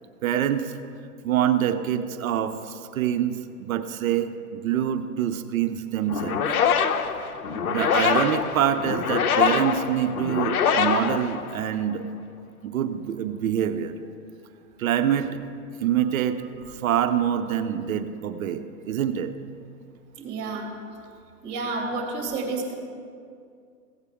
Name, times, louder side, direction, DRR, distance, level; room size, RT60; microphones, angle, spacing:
voice 1, 0.2-0.7 1.2-6.4 7.7-12.0 12.6-13.9 14.8-15.4 15.8-16.4 16.7-19.3, right 10 dB, 60° right, 9 dB, 0.8 m, -25 dB
sound 1, 6.1-11.9, left 7 dB, 65° left, 0.9 m, -24 dB
voice 2, 16.4-17.2 20.2-20.7 21.4-22.7, right 3 dB, 35° right, 0 dB, 2.6 m, -32 dB
16.0 x 8.1 x 3.6 m, 2.3 s
hypercardioid pair, 130°, 46 cm